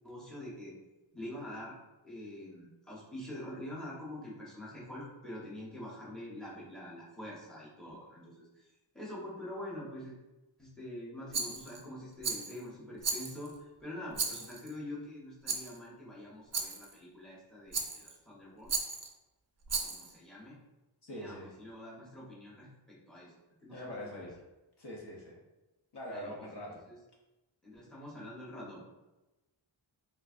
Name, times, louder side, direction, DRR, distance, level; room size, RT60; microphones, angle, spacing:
voice 1, 0.0-0.7 1.1-1.8 2.0-8.6 8.9-10.1 10.6-13.5 13.8-18.7 19.7-20.6 21.1-23.3 23.6-24.3 26.1-26.6 26.9-27.0 27.6-28.8, left 1 dB, ahead, -6 dB, 1.0 m, -45 dB
Rattle, 11.3-11.8 12.2-12.6 13.0-13.5 14.1-14.7 15.5-15.8 16.5-16.9 17.7-18.2 18.7-19.1 19.7-20.1, right 4 dB, 35° right, 0.4 m, -35 dB
voice 2, 21.0-21.6 23.7-24.4 24.8-25.4 25.9-26.8, equal, 55° left, -3 dB, 0.7 m, -43 dB
3.4 x 3.1 x 2.4 m, 1.0 s
wide cardioid pair, 105°, 48 cm